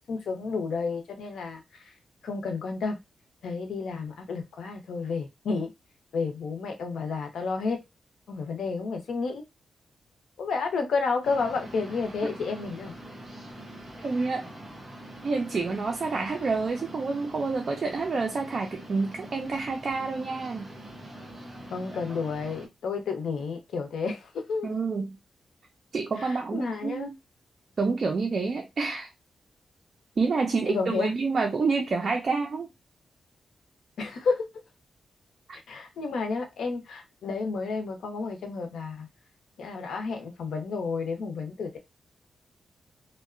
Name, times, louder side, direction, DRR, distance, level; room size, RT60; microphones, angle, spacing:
voice 1, 0.1-1.9 2.2-3.0 3.4-5.7 6.1-7.8 8.3-9.4 10.4-12.9 21.7-24.7 26.2-27.1 30.6-31.1 34.0-34.5 35.7-39.1 39.6-41.8, left 4 dB, 85° left, 0.6 m, -31 dB
sound 1, 11.2-22.7, right 1 dB, 20° right, 1.5 m, -44 dB
voice 2, 14.0-14.5 15.2-20.7 24.6-25.2 25.9-27.1 27.8-29.1 30.2-32.7, right 4 dB, 45° right, 0.4 m, -28 dB
2.7 x 2.1 x 2.4 m
wide cardioid pair, 135°, 0 cm